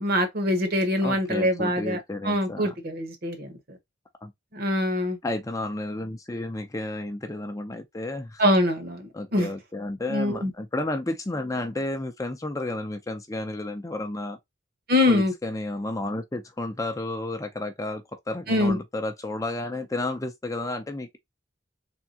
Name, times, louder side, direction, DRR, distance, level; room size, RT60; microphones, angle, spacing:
voice 1, 0.0-2.0 2.2-3.8 4.5-5.2 8.4-9.5 10.1-10.5 14.9-15.3 18.5-18.8, left 1 dB, 50° right, 1.2 m, -24 dB
voice 2, 1.0-2.7 4.2-4.3 5.2-8.4 9.1-14.4 15.1-21.2, left 2 dB, 15° left, 0.5 m, -32 dB
3.6 x 3.4 x 2.7 m
head